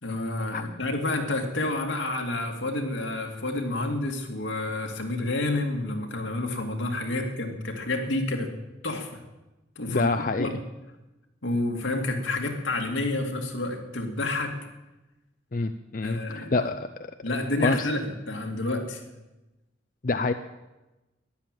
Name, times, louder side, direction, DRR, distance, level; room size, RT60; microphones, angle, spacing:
voice 1, 0.0-8.5 8.8-9.2 9.8-10.6 11.4-14.6 16.0-16.7 17.2-19.0, left 2 dB, 80° left, 2 dB, 2.3 m, -29 dB
voice 2, 9.9-10.5 15.5-16.9 17.6-17.9 20.0-20.3, left 3 dB, 45° left, 8 dB, 0.5 m, -26 dB
13.0 x 11.0 x 9.0 m, 1.1 s
head